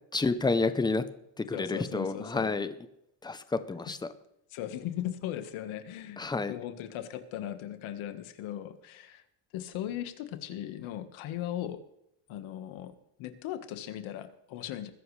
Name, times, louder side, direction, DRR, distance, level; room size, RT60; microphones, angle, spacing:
voice 1, 0.1-1.0 1.4-2.7 3.2-4.0 6.2-6.6, left 3 dB, 10° left, 11 dB, 0.7 m, -29 dB
voice 2, 1.5-2.5 3.9-4.0 4.5-9.2 9.5-11.8 12.3-12.9 13.2-14.9, left 12 dB, 80° left, 9 dB, 1.6 m, -38 dB
21.0 x 10.5 x 3.3 m, 0.81 s
cardioid pair, 150°, 47 cm